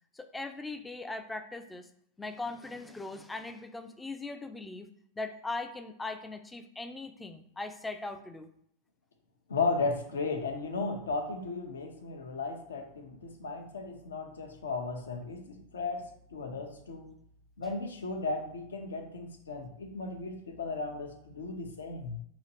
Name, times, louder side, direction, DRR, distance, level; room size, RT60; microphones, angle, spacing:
voice 1, 0.2-1.9 2.2-4.9 5.2-8.5, left 3 dB, 10° left, 8 dB, 0.4 m, -39 dB
voice 2, 9.5-17.1 17.6-22.2, left 3 dB, 70° left, 4 dB, 0.7 m, -35 dB
4.9 x 3.0 x 2.8 m, 0.70 s
figure-of-eight pair, 90°, 0 cm